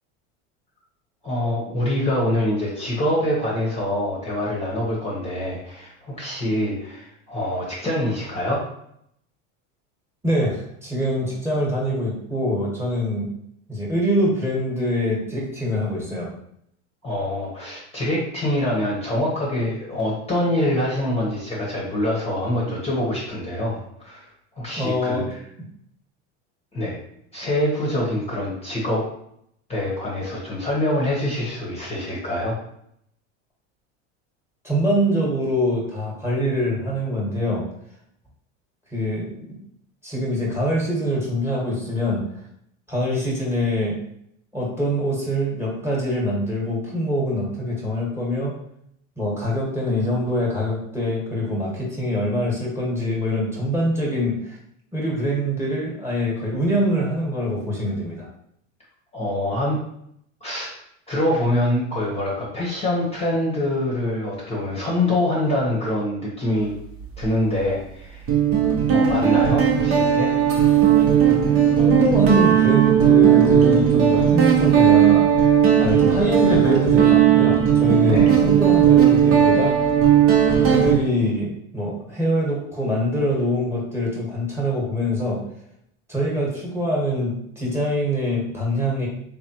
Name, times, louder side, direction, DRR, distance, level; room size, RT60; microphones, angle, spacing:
voice 1, 1.2-8.6 17.0-24.3 24.5-25.4 26.7-27.0 27.3-29.0 29.7-32.6 59.1-59.8 60.4-60.7 61.1-66.7 67.2-68.3 68.9-70.3 71.2-71.4 78.0-78.3, left 1 dB, 15° left, -5 dB, 1.1 m, -25 dB
voice 2, 10.2-13.3 13.7-16.3 24.7-25.3 34.6-37.6 38.9-39.3 40.0-42.2 42.9-44.0 44.5-48.5 49.2-54.6 54.9-58.3 71.8-75.3 75.8-79.7 80.5-85.4 86.1-89.1, equal, 5° right, -3 dB, 1.4 m, -24 dB
Guitar, 67.0-67.3 68.3-80.9, right 9 dB, 40° right, 0.9 m, -16 dB
3.6 x 3.3 x 2.9 m, 0.72 s
supercardioid pair, 110°, 36 cm